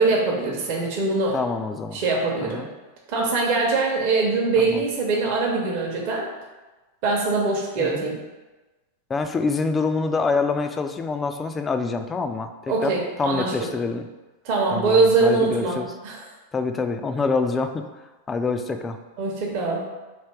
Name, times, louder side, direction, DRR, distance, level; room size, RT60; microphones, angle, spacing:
voice 1, 0.0-1.4 1.9-2.6 3.1-6.3 7.0-8.2 12.7-13.5 14.4-16.2 19.2-19.9, right 3 dB, 45° right, -2 dB, 0.8 m, -22 dB
voice 2, 1.3-2.0 2.4-2.7 4.6-4.8 7.8-8.0 9.1-14.0 14.7-15.9 16.5-17.8 18.3-19.0, left 4 dB, 20° left, 7 dB, 0.3 m, -26 dB
3.4 x 2.8 x 4.5 m, 1.2 s
figure-of-eight pair, 90°, 0 cm